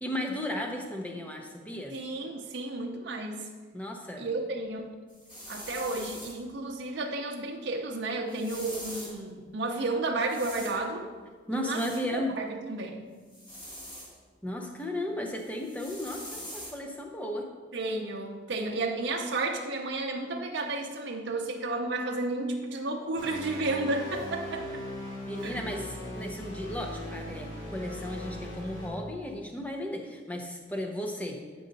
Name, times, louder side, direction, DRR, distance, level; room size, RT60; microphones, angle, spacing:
voice 1, 0.0-2.0 3.7-4.3 11.5-12.4 14.4-17.5 25.3-31.4, left 1 dB, 10° left, 2 dB, 0.7 m, -35 dB
voice 2, 1.9-3.5 4.2-5.0 5.5-11.1 11.5-13.1 17.7-24.8 25.4-25.6, right 2 dB, 70° right, 0 dB, 0.6 m, -32 dB
sound 1, 5.1-6.4 8.3-9.2 10.3-10.8 11.7-12.0 13.3-14.1 15.4-16.7, equal, 25° left, 1.5 m, -43 dB
sound 2, 23.2-28.9, left 1 dB, 85° left, 2.4 m, -39 dB
8.6 x 5.3 x 3.9 m, 1.5 s
head